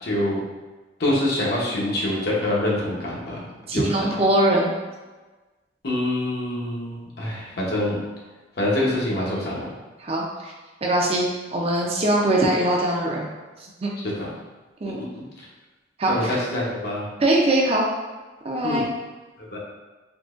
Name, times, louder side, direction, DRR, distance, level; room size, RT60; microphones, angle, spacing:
voice 1, 0.0-0.4 1.0-3.5 3.7-4.1 5.8-8.0 8.6-9.7 14.2-14.3 14.9-15.2 16.1-17.1 18.6-18.8 19.5-19.6, left 1 dB, 55° left, -4 dB, 0.8 m, -25 dB
voice 2, 3.7-4.7 10.0-10.5 10.8-13.3 13.8-13.9 14.8-15.0 16.0-16.3 17.2-17.9 18.4-18.9, right 1 dB, 30° right, -2 dB, 0.5 m, -22 dB
3.7 x 2.9 x 2.4 m, 1.2 s
head